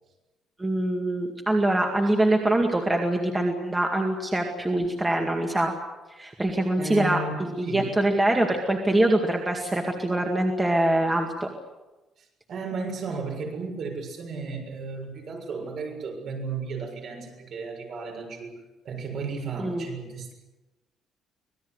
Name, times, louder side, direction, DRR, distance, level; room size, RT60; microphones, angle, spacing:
voice 1, 0.6-5.7 6.2-11.5 19.6-19.9, right 1 dB, 10° right, 1 dB, 2.2 m, -24 dB
voice 2, 6.8-7.9 12.5-18.6 18.8-20.3, right 3 dB, 45° right, 2 dB, 7.1 m, -34 dB
26.0 x 19.5 x 8.1 m, 1.1 s
cardioid pair, 170°, 0 cm